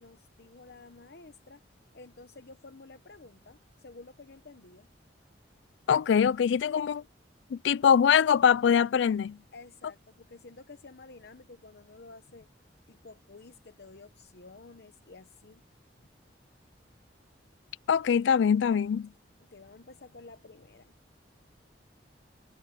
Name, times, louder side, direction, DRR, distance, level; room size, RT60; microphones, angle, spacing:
voice 1, 0.0-1.6 1.9-4.9 9.5-12.5 12.9-15.6 19.4-21.0, left 3 dB, 60° left, 1.0 m, -51 dB
voice 2, 5.9-7.0 7.5-9.4 17.9-19.1, left 7 dB, 80° left, 0.3 m, -23 dB
head